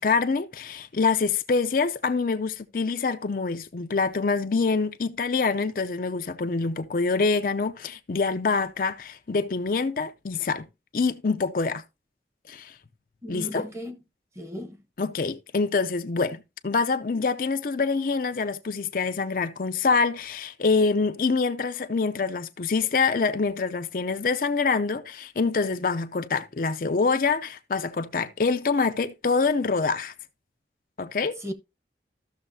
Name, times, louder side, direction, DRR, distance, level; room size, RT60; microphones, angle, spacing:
voice 1, 0.0-10.7 10.9-11.8 12.5-12.7 13.3-13.7 15.0-30.1 31.0-31.4, left 4 dB, 50° left, 0.5 m, -25 dB
voice 2, 13.2-14.0 14.4-14.8 31.4-31.5, left 1 dB, 15° right, 1.0 m, -35 dB
14.0 x 6.4 x 2.7 m
head